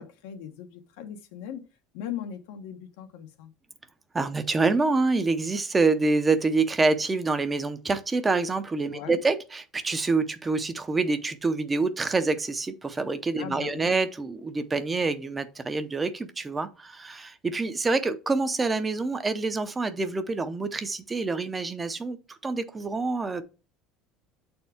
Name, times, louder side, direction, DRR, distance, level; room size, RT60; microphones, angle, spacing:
voice 1, 0.0-1.6 1.9-3.5 8.9-9.2 13.4-13.9, left 9 dB, 85° left, 1.3 m, -39 dB
voice 2, 4.1-23.4, right 3 dB, 15° right, 0.6 m, -26 dB
7.9 x 4.3 x 3.5 m
cardioid pair, 145°, 0 cm